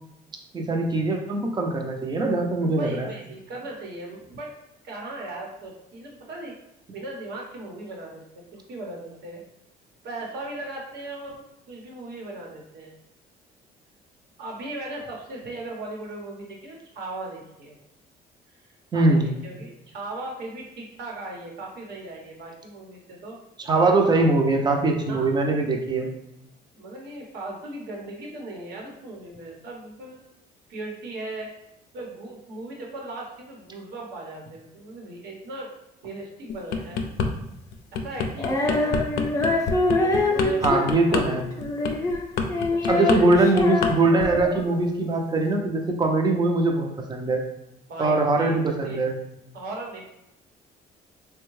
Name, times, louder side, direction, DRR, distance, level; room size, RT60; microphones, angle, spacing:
voice 1, 0.5-3.1 18.9-19.3 23.6-26.1 40.6-41.5 42.9-47.4 48.0-49.2, right 2 dB, 25° right, 2 dB, 0.6 m, -22 dB
voice 2, 2.6-4.5 4.8-6.5 6.9-9.4 10.0-12.9 14.4-17.8 18.9-23.4 25.1-25.4 26.7-30.2 30.7-31.5 31.9-35.7 36.0-37.1 37.9-39.3 40.0-41.3 42.7-43.2 47.9-48.6 48.8-49.1 49.5-50.1, right 2 dB, 75° right, -1 dB, 1.1 m, -38 dB
sound 1, 36.5-37.3 37.7-43.9 44.2-44.5, left 5 dB, 75° left, 0.5 m, -27 dB
Female singing, 38.4-44.8, left 2 dB, 20° left, 0.5 m, -25 dB
3.5 x 2.2 x 3.1 m, 0.84 s
cardioid pair, 110°, 17 cm